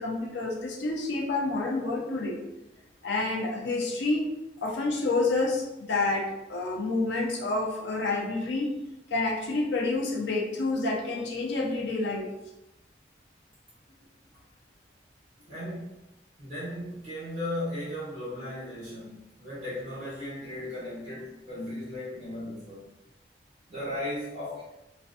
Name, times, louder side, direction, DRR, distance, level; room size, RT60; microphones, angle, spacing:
voice 1, 0.0-2.4 3.0-4.3 4.6-8.7 9.1-12.3, left 3 dB, 90° left, 0 dB, 0.5 m, -28 dB
voice 2, 15.5-16.0 16.4-22.9 23.7-24.7, left 1 dB, 50° right, -10 dB, 0.9 m, -36 dB
2.5 x 2.2 x 2.4 m, 0.94 s
head